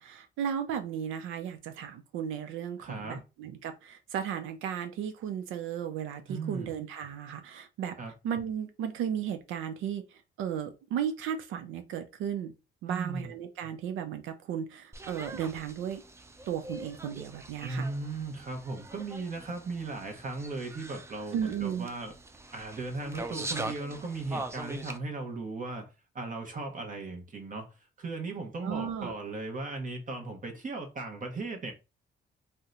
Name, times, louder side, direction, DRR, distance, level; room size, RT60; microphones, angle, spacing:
voice 1, 0.0-7.9 8.2-12.5 12.8-16.0 16.5-17.9 21.3-21.9 28.6-29.1, right 8 dB, 90° right, 0.5 m, -35 dB
voice 2, 2.8-3.2 6.3-6.7 8.0-8.1 12.9-13.3 17.6-22.1 22.5-25.9 26.1-31.7, right 3 dB, 40° right, 0.9 m, -37 dB
sound 1, 14.9-25.0, right 2 dB, 15° right, 0.4 m, -42 dB
2.7 x 2.1 x 3.6 m
cardioid pair, 90°, 20 cm